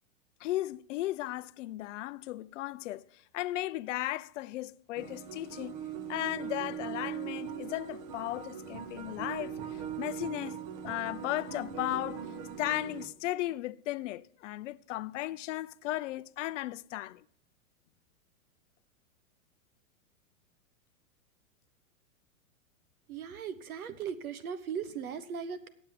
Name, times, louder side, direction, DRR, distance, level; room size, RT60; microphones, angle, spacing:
voice 1, 0.4-3.1 3.3-5.8 6.1-10.6 10.8-12.2 12.6-17.2, left 16 dB, 60° left, 0.5 m, -36 dB
sound 1, 5.0-13.1, right 8 dB, 35° right, 1.0 m, -40 dB
voice 2, 23.1-25.7, right 7 dB, 85° right, 1.1 m, -38 dB
9.0 x 7.9 x 7.3 m
hypercardioid pair, 130°, 42 cm